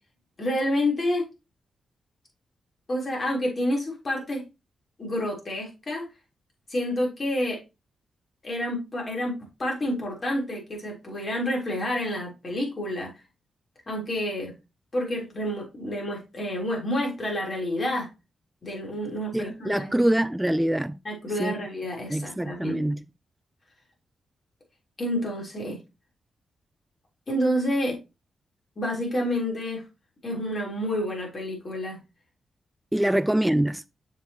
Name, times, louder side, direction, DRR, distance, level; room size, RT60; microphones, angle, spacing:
voice 1, 0.4-1.2 2.9-4.4 5.0-6.0 6.7-7.6 8.4-9.3 9.6-13.1 13.9-14.5 14.9-18.1 18.6-19.8 21.1-22.8 25.0-25.8 27.3-28.0 28.8-29.8 30.2-32.0 33.0-33.1, left 1 dB, 45° left, 3.6 m, -29 dB
voice 2, 19.3-21.0 21.4-21.7 22.1-23.1 32.9-33.8, right 1 dB, 10° right, 0.3 m, -24 dB
7.0 x 5.4 x 2.9 m
cardioid pair, 60°, 0 cm